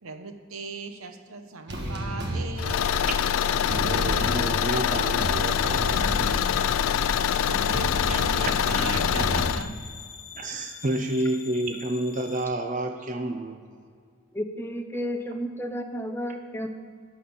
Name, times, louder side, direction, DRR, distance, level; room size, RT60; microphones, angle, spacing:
voice 1, 0.0-2.9 7.2-9.8, right 4 dB, 90° right, 7 dB, 0.9 m, -38 dB
sound 1, 1.7-9.6, equal, 55° right, 1.3 m, -32 dB
Car / Engine, 2.6-9.6, left 9 dB, 85° left, 0.3 m, -25 dB
voice 2, 3.5-6.2 10.4-13.8 16.3-16.4, right 1 dB, 40° right, 5 dB, 0.5 m, -30 dB
sound 2, 5.3-12.4, left 7 dB, 60° left, 1.3 m, -45 dB
voice 3, 14.3-16.7, equal, 10° left, 5 dB, 0.5 m, -32 dB
12.0 x 4.2 x 7.7 m, 2.1 s
head